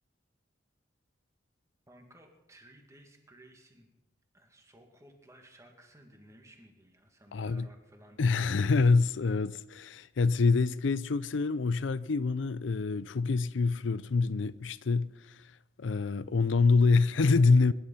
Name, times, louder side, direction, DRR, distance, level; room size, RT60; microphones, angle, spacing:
voice 1, 1.9-3.9 4.3-8.8, right 1 dB, 15° right, 2.3 m, -57 dB
voice 2, 7.3-7.7 8.2-17.7, left 4 dB, 85° left, 0.5 m, -26 dB
22.0 x 11.5 x 5.7 m
head